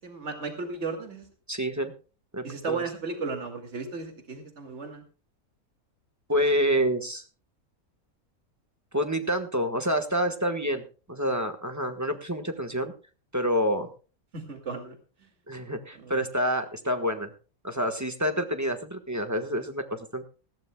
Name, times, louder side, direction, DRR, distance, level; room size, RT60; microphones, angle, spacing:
voice 1, 0.0-1.3 2.4-5.0 14.3-14.9 15.9-16.2, right 4 dB, 50° right, 5 dB, 2.6 m, -35 dB
voice 2, 1.5-1.9 2.3-2.8 6.3-7.2 8.9-12.9 13.3-13.9 15.5-17.3 17.6-20.3, equal, 10° right, 6 dB, 1.3 m, -28 dB
18.5 x 15.5 x 2.3 m, 0.35 s
omnidirectional pair, 1.5 m